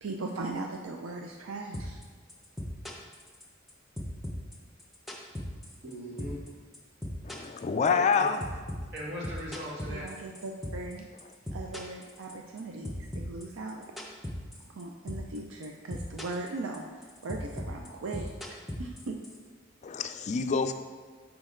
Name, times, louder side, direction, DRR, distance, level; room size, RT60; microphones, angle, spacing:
voice 1, 0.0-2.0 9.9-11.1 11.5-13.9 14.7-19.1, right 3 dB, 85° right, 2 dB, 0.5 m, -39 dB
sound 1, 1.7-2.0 2.3-3.7 4.0-5.9 6.2-6.5 6.7-10.9 11.2-12.6 12.8-14.8 15.1-15.4 15.6-16.5 16.7-19.4, left 1 dB, ahead, 0.8 m, -38 dB
voice 2, 5.8-6.4 7.9-8.3 8.9-10.1, equal, 60° right, -5 dB, 1.8 m, -39 dB
voice 3, 7.2-8.4 19.8-20.7, left 5 dB, 35° left, 8 dB, 0.4 m, -27 dB
6.3 x 5.8 x 3.8 m, 1.5 s
head